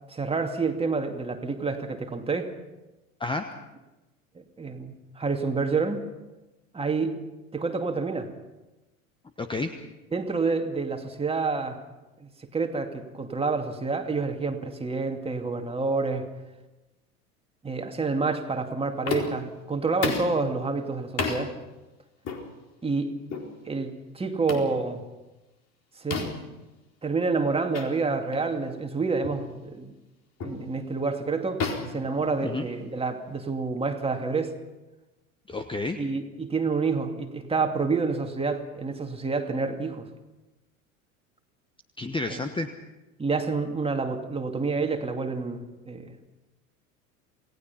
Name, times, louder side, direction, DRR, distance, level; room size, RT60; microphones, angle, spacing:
voice 1, 0.1-2.5 4.3-6.1 6.7-7.2 7.5-8.3 10.1-11.8 12.2-16.3 17.6-21.6 22.8-23.2 23.7-25.0 26.0-26.3 27.0-29.9 30.4-31.6 31.9-34.5 36.0-40.1 42.3-42.4 43.2-46.1, right 4 dB, 15° right, 4 dB, 2.5 m, -28 dB
voice 2, 9.4-9.7 32.4-32.6 35.5-36.0 42.0-42.7, left 3 dB, 10° left, 8 dB, 1.2 m, -30 dB
sound 1, 19.1-19.5 20.0-20.4 21.2-21.4 22.2-22.4 23.3-23.5 24.5-24.7 26.1-26.5 27.7-27.9 28.3-28.5 29.2-29.5 30.4-30.6 31.6-32.8, left 5 dB, 35° left, 4.3 m, -31 dB
28.0 x 18.5 x 5.8 m, 1.1 s
figure-of-eight pair, 75°, 44 cm